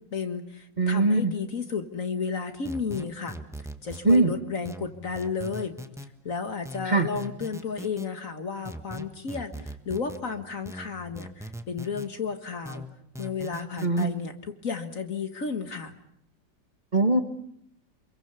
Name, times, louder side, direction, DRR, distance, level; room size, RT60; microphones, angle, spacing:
voice 1, 0.1-3.4 3.8-5.8 6.2-12.9 13.2-16.0, left 5 dB, 45° left, 8 dB, 1.9 m, -33 dB
voice 2, 0.8-1.3 4.1-4.3 6.9-7.1 13.8-14.1 16.9-17.2, right 2 dB, 25° right, 6 dB, 1.4 m, -21 dB
sound 1, 2.6-4.2 4.6-6.1 6.6-8.1 8.6-10.2 10.6-12.1 12.6-14.1, equal, ahead, 1.2 m, -40 dB
28.0 x 22.5 x 6.9 m, 0.72 s
omnidirectional pair, 2.0 m